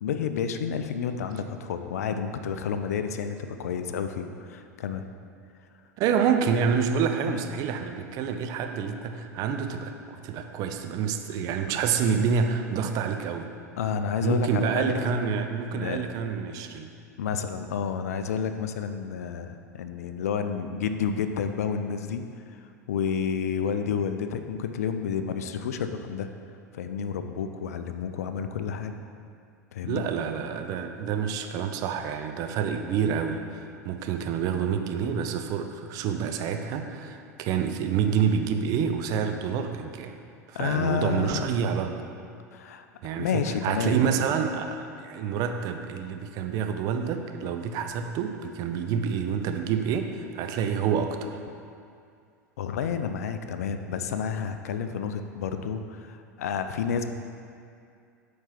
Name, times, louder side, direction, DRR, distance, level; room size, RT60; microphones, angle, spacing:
voice 1, 0.0-5.0 7.2-7.5 13.8-15.1 15.7-16.0 17.2-22.2 22.5-26.3 26.7-29.0 29.7-30.0 40.5-41.4 42.5-42.9 43.2-44.2 52.6-57.1, left 7 dB, 65° left, 8 dB, 0.4 m, -30 dB
voice 2, 6.0-13.5 14.2-16.9 29.9-40.2 40.5-42.0 43.0-51.3, right 7 dB, 40° right, 6 dB, 0.5 m, -28 dB
4.6 x 4.4 x 5.8 m, 2.4 s
figure-of-eight pair, 80°, 9 cm